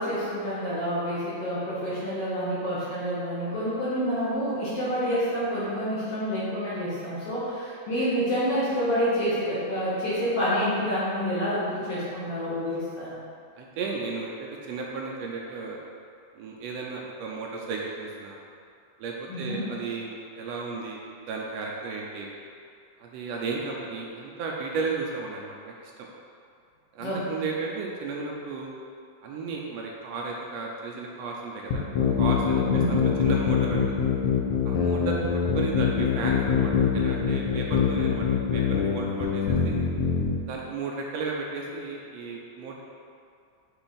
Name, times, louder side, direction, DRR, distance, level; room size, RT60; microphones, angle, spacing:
voice 1, 0.0-13.2 19.3-19.7 27.0-27.4 32.6-33.0, equal, 60° left, -10 dB, 1.9 m, -28 dB
voice 2, 13.6-15.8 16.3-18.4 19.0-22.3 23.0-25.9 26.9-28.7 29.2-34.0 34.6-35.2 35.5-38.3 38.5-39.8 40.5-42.8, right 4 dB, 80° right, -1 dB, 1.5 m, -34 dB
sound 1, 31.7-40.4, left 6 dB, 80° left, 2.2 m, -24 dB
7.8 x 3.3 x 4.0 m, 2.4 s
omnidirectional pair, 3.4 m